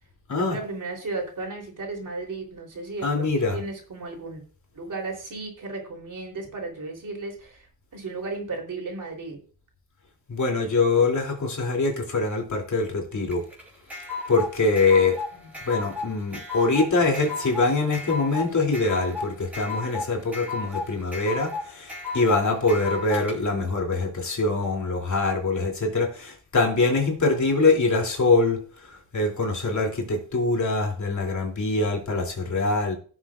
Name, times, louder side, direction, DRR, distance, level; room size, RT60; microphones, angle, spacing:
voice 1, 0.4-4.4 4.7-9.4 15.3-15.5, right 3 dB, 50° right, 0 dB, 3.6 m, -35 dB
voice 2, 3.0-3.6 10.3-13.4 14.3-15.2 15.7-28.6 29.1-32.9, left 3 dB, 45° left, 1 dB, 2.9 m, -23 dB
sound 1, 13.3-23.3, left 3 dB, 5° right, 5.1 m, -34 dB
17.0 x 7.2 x 2.5 m, 0.43 s
cardioid pair, 105°, 40 cm